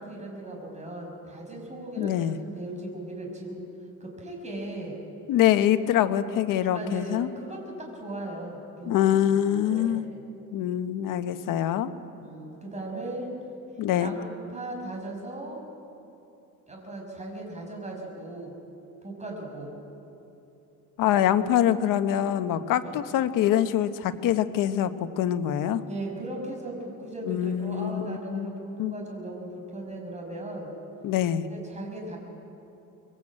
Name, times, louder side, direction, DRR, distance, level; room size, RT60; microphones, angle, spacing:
voice 1, 0.0-3.6 4.0-5.0 6.7-9.0 9.3-9.4 9.7-10.2 12.2-13.4 14.0-15.6 16.7-18.5 19.0-19.7 22.8-23.0 25.8-30.7 31.5-32.2, right 1 dB, 20° right, 0 dB, 6.3 m, -38 dB
voice 2, 2.0-2.4 5.3-7.3 8.9-10.0 10.5-11.9 13.8-14.1 21.0-25.8 27.2-28.5 28.8-28.9 31.0-31.4, left 11 dB, 85° left, 10 dB, 1.2 m, -24 dB
25.0 x 22.5 x 8.9 m, 2.9 s
cardioid pair, 135°, 31 cm